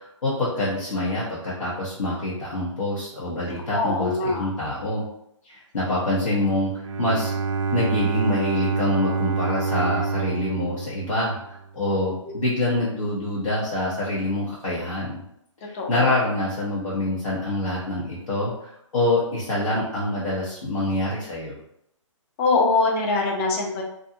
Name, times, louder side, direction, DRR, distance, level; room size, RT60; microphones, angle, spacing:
voice 1, 0.0-5.0 5.4-7.3 7.7-15.2 15.6-21.5, left 1 dB, 90° left, -9 dB, 1.0 m, -26 dB
voice 2, 3.7-4.4 15.7-16.0 22.4-23.8, left 3 dB, 25° left, 0 dB, 0.5 m, -23 dB
Bowed string instrument, 6.8-11.7, right 4 dB, 75° right, 0.4 m, -27 dB
2.6 x 2.3 x 2.7 m, 0.76 s
hypercardioid pair, 145°, 17 cm